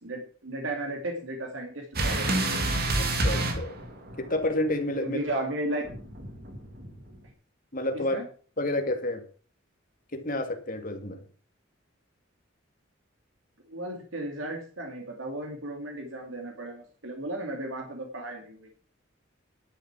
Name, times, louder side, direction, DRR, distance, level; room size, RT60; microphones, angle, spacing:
voice 1, 0.0-2.3 5.0-5.9 8.1-8.2 13.7-18.7, right 1 dB, 75° right, 2 dB, 2.6 m, -34 dB
sound 1, 1.9-4.4 5.8-7.1, right 2 dB, 50° right, 2.3 m, -28 dB
voice 2, 3.0-3.8 4.2-5.2 7.7-8.2 8.6-9.2 10.1-11.2, left 1 dB, 45° left, 5 dB, 2.3 m, -29 dB
12.0 x 8.2 x 6.0 m, 0.41 s
head